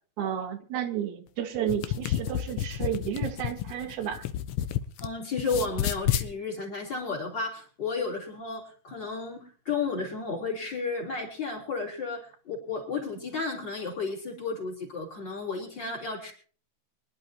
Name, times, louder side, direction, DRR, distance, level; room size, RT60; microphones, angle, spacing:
voice 1, 0.2-4.3, right 9 dB, 80° right, 6 dB, 2.5 m, -32 dB
sound 1, 1.5-5.1 5.4-6.3, left 11 dB, 75° left, 1.3 m, -30 dB
voice 2, 5.0-16.3, left 4 dB, 35° left, -2 dB, 3.9 m, -33 dB
24.5 x 11.0 x 2.9 m, 0.42 s
omnidirectional pair, 3.3 m